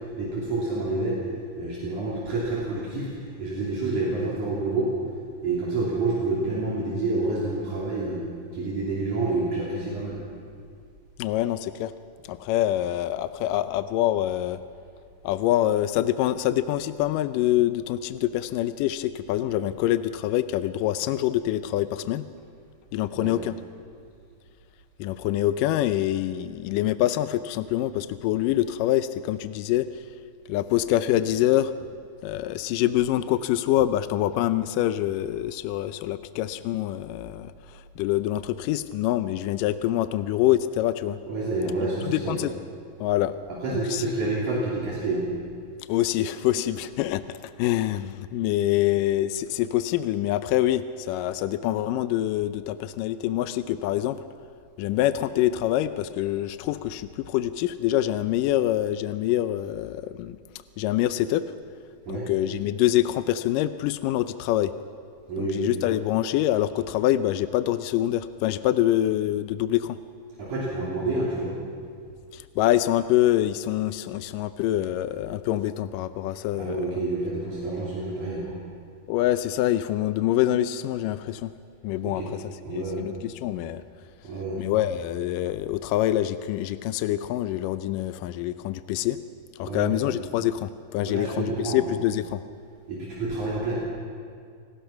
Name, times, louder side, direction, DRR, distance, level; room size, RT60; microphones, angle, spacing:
voice 1, 0.2-1.2 1.6-4.9 5.4-8.2 8.5-10.2 23.1-23.3 41.3-42.4 43.5-45.2 62.1-62.3 65.3-65.6 70.4-71.5 76.5-78.6 82.0-82.3 82.6-83.1 84.2-84.6 89.6-90.0 91.0-91.8 92.9-93.7, right 2 dB, 55° right, -6 dB, 4.3 m, -28 dB
voice 2, 11.2-11.9 12.3-14.6 15.2-22.2 22.9-23.6 25.0-29.9 30.5-31.7 32.2-41.2 42.0-42.5 43.0-43.3 43.7-44.1 45.9-54.2 54.8-60.4 60.8-61.4 62.1-64.7 65.4-70.0 72.3-76.8 79.1-81.5 81.8-83.8 84.6-89.2 89.6-92.4, left 13 dB, 80° left, 12 dB, 2.1 m, -25 dB
28.0 x 18.5 x 5.8 m, 2.2 s
omnidirectional pair, 4.2 m